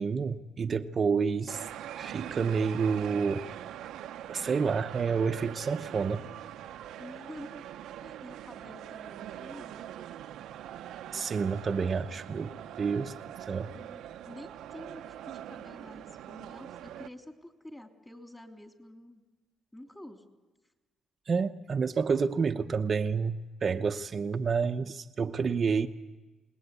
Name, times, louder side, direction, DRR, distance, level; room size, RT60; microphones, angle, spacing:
voice 1, 0.0-1.6 2.0-3.5 4.3-6.3 11.1-12.5 12.8-13.1 13.5-13.7 21.3-25.9, right 5 dB, 45° right, 5 dB, 0.9 m, -29 dB
sound 1, 1.5-17.1, right 11 dB, 85° right, 0.8 m, -43 dB
voice 2, 7.0-7.7 8.0-9.9 13.7-19.2 19.7-20.2, left 1 dB, 10° left, 4 dB, 3.2 m, -48 dB
28.0 x 19.5 x 8.4 m, 1.2 s
cardioid pair, 90°, 0 cm